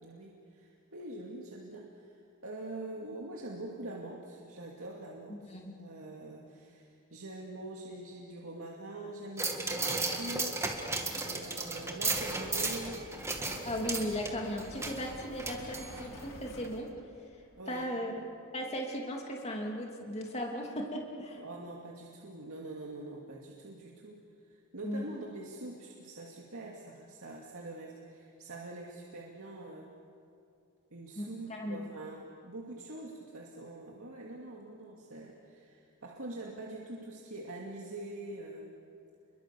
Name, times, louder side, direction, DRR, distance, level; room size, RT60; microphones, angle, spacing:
voice 1, 0.0-10.6 11.2-13.1 17.6-18.0 21.4-29.9 30.9-38.7, right 2 dB, 65° right, -2 dB, 2.5 m, -44 dB
voice 2, 5.3-5.7 13.6-16.9 17.7-18.1 18.5-21.4 24.8-25.1 31.2-31.8, equal, 30° left, 0 dB, 2.8 m, -37 dB
sound 1, 9.4-16.3 16.6-16.7, right 3 dB, 10° right, 1.9 m, -35 dB
Wind, 12.1-17.6, left 1 dB, 70° left, 3.3 m, -50 dB
30.0 x 22.5 x 7.0 m, 2.4 s
head